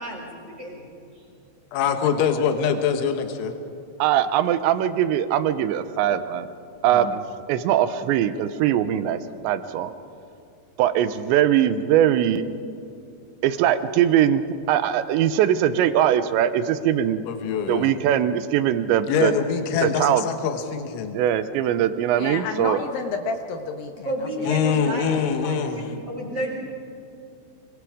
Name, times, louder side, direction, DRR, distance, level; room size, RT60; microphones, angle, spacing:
voice 1, 0.0-0.8 24.0-26.5, equal, 15° right, -3 dB, 4.9 m, -31 dB
voice 2, 1.7-3.6 6.9-7.2 17.3-18.0 19.1-21.2 24.4-25.9, left 7 dB, 85° left, 6 dB, 3.8 m, -24 dB
voice 3, 4.0-6.5 6.8-7.2 7.5-9.9 10.8-12.4 13.4-17.2 17.7-19.3 19.8-20.2 21.1-22.8, right 10 dB, 85° right, 12 dB, 3.0 m, -21 dB
voice 4, 22.2-24.5, left 4 dB, 70° left, 5 dB, 2.4 m, -31 dB
25.0 x 21.5 x 5.0 m, 2.6 s
omnidirectional pair, 5.4 m